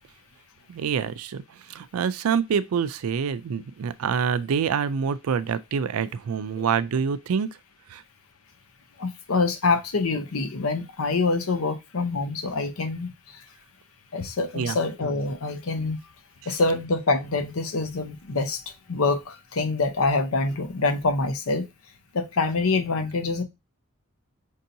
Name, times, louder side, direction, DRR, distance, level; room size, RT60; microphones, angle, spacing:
voice 1, 0.7-1.4 1.7-7.5 7.9-8.0 14.5-14.8, right 6 dB, 85° right, 0.4 m, -26 dB
voice 2, 9.0-13.4 14.1-16.0 16.5-21.6 22.1-23.4, left 3 dB, 80° left, 0.7 m, -26 dB
5.3 x 2.8 x 2.6 m
head